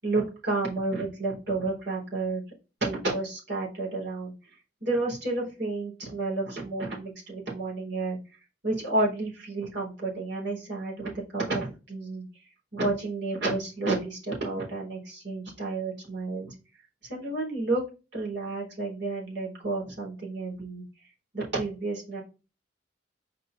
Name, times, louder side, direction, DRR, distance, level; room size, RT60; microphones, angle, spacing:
voice 1, 0.0-2.4 2.8-4.3 4.8-8.2 8.6-12.2 12.7-16.5 17.1-20.8 21.3-22.2, right 2 dB, 65° right, -3 dB, 3.9 m, -31 dB
5.3 x 4.3 x 4.6 m, 0.30 s
head